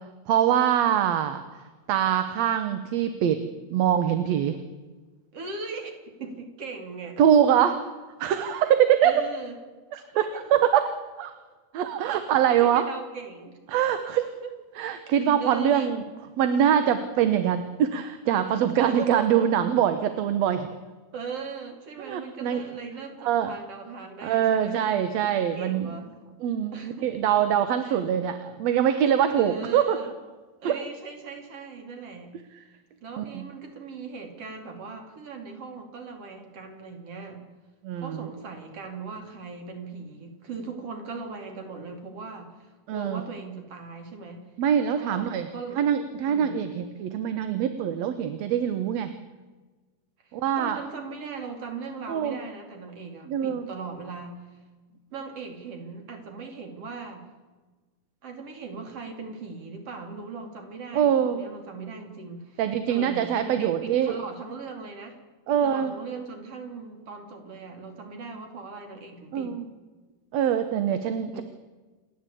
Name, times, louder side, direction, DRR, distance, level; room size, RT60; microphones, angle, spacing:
voice 1, 0.3-3.4 3.7-4.6 7.2-7.8 8.2-9.2 9.9-10.9 11.2-11.3 11.7-12.9 13.7-14.2 14.8-16.0 16.4-20.7 22.0-22.6 23.2-23.5 24.2-25.9 26.4-30.0 30.6-30.8 33.2-33.4 37.8-38.2 42.9-43.2 44.6-45.5 45.8-49.1 50.3-50.8 52.1-52.4 53.3-53.7 60.9-61.4 62.6-64.2 65.5-65.9 69.3-69.7 70.3-71.4, right 9 dB, 70° right, 10 dB, 2.0 m, -23 dB
voice 2, 5.3-7.3 9.0-9.6 9.9-10.5 12.5-13.5 14.0-14.5 15.3-16.0 18.8-19.5 21.1-24.8 25.4-26.1 26.7-27.1 27.8-28.1 29.3-30.1 30.6-32.3 33.0-37.4 38.0-44.4 45.0-45.9 46.3-46.6 50.2-54.6 55.1-57.3 58.2-62.6 62.9-65.2 65.5-69.6 71.3-71.4, right 4 dB, 55° right, 4 dB, 3.7 m, -39 dB
28.0 x 11.5 x 8.4 m, 1.3 s
omnidirectional pair, 3.4 m